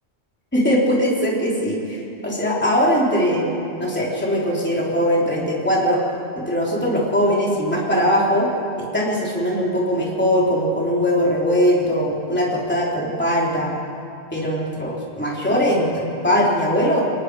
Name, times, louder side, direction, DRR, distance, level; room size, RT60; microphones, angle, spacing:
voice 1, 0.5-3.5 3.8-6.0 6.4-8.5 8.8-13.7 14.3-17.0, equal, 10° left, -5 dB, 3.4 m, -20 dB
30.0 x 19.5 x 4.8 m, 2.8 s
omnidirectional pair, 1.1 m